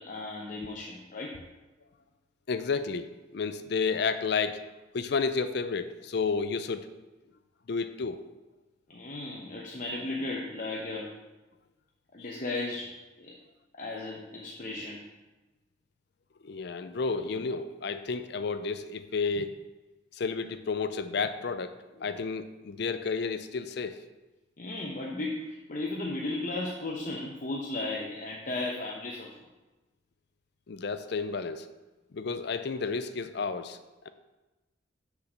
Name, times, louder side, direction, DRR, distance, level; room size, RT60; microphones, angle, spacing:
voice 1, 0.0-1.4 8.9-11.1 12.1-13.3 13.8-15.0 24.6-29.3, left 2 dB, 40° left, -2 dB, 0.8 m, -35 dB
voice 2, 2.5-3.1 3.3-4.7 4.9-6.9 7.7-8.2 16.4-19.6 20.2-24.0 30.7-31.7 32.1-33.8, left 4 dB, 60° left, 11 dB, 0.4 m, -31 dB
6.6 x 5.0 x 6.6 m, 1.1 s
head